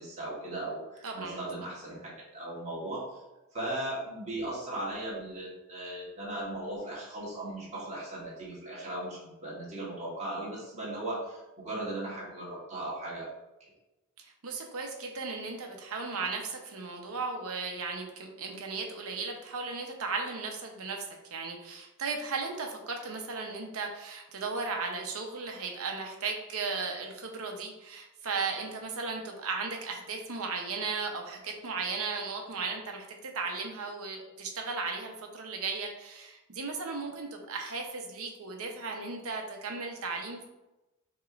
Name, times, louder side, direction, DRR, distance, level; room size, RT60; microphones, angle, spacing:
voice 1, 0.0-3.2 3.5-13.3, right 1 dB, 30° right, -7 dB, 1.3 m, -37 dB
voice 2, 1.0-1.4 14.2-40.4, right 4 dB, 70° right, 2 dB, 0.8 m, -36 dB
6.3 x 3.0 x 2.5 m, 1.0 s
head